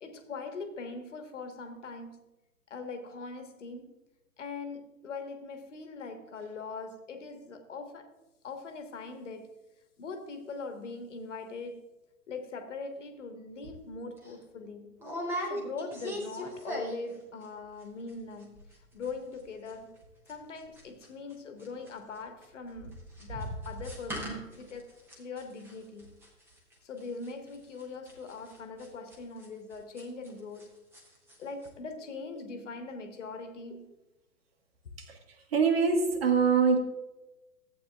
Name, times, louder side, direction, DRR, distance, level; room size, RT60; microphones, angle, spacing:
voice 1, 0.0-2.2 2.7-4.0 4.4-8.1 8.4-9.5 10.0-11.8 12.3-15.0 15.4-18.6 18.9-19.9 20.3-24.9 25.2-26.2 26.8-30.7 31.4-33.9, left 4 dB, 50° left, 6 dB, 1.5 m, -41 dB
sound 1, 13.6-13.8 14.2-14.3 15.0-17.2 17.4-17.8 18.1-18.2 18.4-18.8 19.0-21.3 21.6-30.7 30.9-31.4 31.6-31.7, equal, 5° right, 1.0 m, -40 dB
voice 2, 35.5-36.8, right 5 dB, 40° right, 5 dB, 1.4 m, -24 dB
14.5 x 8.5 x 2.3 m, 1.0 s
figure-of-eight pair, 125°, 48 cm